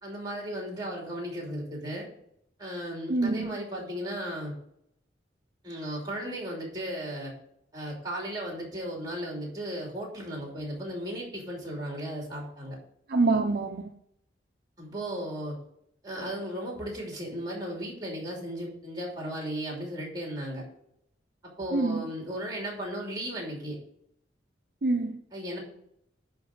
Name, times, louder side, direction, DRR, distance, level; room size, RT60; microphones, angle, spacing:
voice 1, 0.0-2.1 2.6-4.5 5.6-7.3 7.7-12.8 14.8-15.6 16.0-20.6 21.4-23.8 25.3-25.6, equal, 20° right, 2.9 m, -35 dB
voice 2, 3.1-3.6 13.1-13.9 21.7-22.0 24.8-25.2, right 3 dB, 55° right, 0.6 m, -26 dB
10.0 x 3.9 x 6.4 m
head